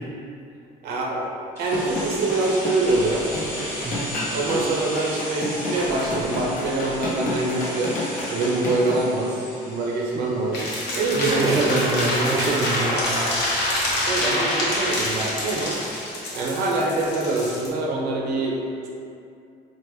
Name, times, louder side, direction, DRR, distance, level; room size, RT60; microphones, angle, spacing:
voice 1, 0.8-1.3 1.6-3.3 4.2-8.0 8.3-11.7 14.0-15.8 16.3-18.9, right 2 dB, 75° right, -2 dB, 0.6 m, -25 dB
sound 1, 1.6-9.0, left 2 dB, 55° left, 0.8 m, -30 dB
sound 2, 1.6-11.4 11.7-11.8, equal, 15° left, 1.1 m, -36 dB
sound 3, 10.5-17.7, left 1 dB, 80° left, 0.9 m, -26 dB
voice 2, 11.1-13.3, right 3 dB, 20° right, -2 dB, 0.4 m, -25 dB
3.8 x 2.0 x 3.1 m, 2.6 s
cardioid pair, 110°, 17 cm